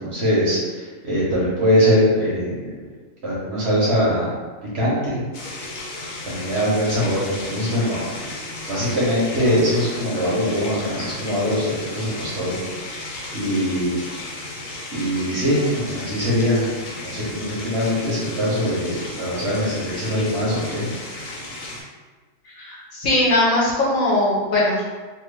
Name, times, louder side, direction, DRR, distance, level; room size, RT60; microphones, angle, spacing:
voice 1, 0.0-2.7 3.2-4.3 4.7-5.2 6.2-8.1 8.7-12.5 13.3-14.0 14.9-20.9, equal, 50° right, -7 dB, 1.0 m, -22 dB
sound 1, 5.3-21.8, left 2 dB, 85° left, 1.2 m, -34 dB
voice 2, 22.6-24.8, left 1 dB, 65° left, -5 dB, 1.1 m, -20 dB
2.8 x 2.7 x 3.2 m, 1.4 s
omnidirectional pair, 1.7 m